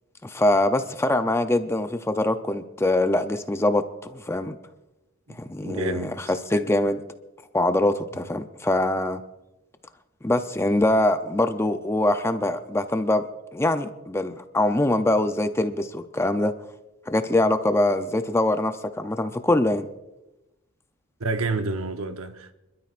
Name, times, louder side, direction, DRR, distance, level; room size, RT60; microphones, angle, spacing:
voice 1, 0.2-4.6 5.5-7.0 7.5-9.2 10.2-13.2 13.5-16.5 17.1-19.9, left 1 dB, 10° left, 0.5 m, -23 dB
voice 2, 5.3-6.2 21.2-22.5, right 3 dB, 70° right, 0.9 m, -29 dB
26.0 x 12.5 x 2.5 m
head